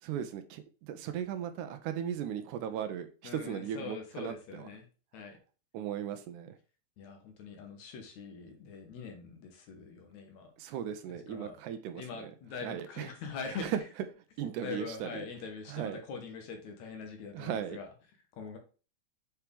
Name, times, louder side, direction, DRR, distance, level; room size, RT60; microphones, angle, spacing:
voice 1, 0.0-4.7 5.7-6.6 10.6-12.3 12.6-13.1 13.5-13.8 14.4-15.2 15.7-16.0 17.3-17.8, right 9 dB, 80° right, 9 dB, 2.1 m, -37 dB
voice 2, 3.2-4.9 5.1-5.4 7.0-10.5 11.3-11.6 12.0-13.7 14.6-17.9 18.3-18.6, left 5 dB, 70° left, 4 dB, 2.3 m, -43 dB
7.2 x 4.5 x 3.4 m, 0.36 s
omnidirectional pair, 3.6 m